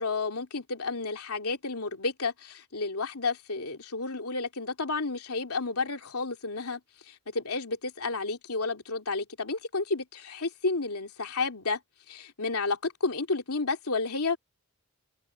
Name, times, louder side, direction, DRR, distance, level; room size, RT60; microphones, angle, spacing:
voice 1, 0.0-6.8 7.1-11.8 12.1-14.4, left 3 dB, 85° left, 2.8 m, -31 dB
head